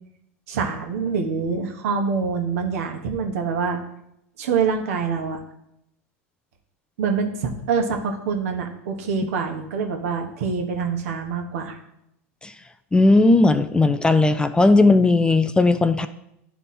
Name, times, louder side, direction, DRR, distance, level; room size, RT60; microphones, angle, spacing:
voice 1, 0.5-3.8 4.4-5.4 7.0-11.8, right 5 dB, 75° right, 3 dB, 1.3 m, -25 dB
voice 2, 12.9-16.1, left 2 dB, 10° left, 11 dB, 0.4 m, -17 dB
10.5 x 3.5 x 4.2 m, 0.81 s
hypercardioid pair, 100°, 8 cm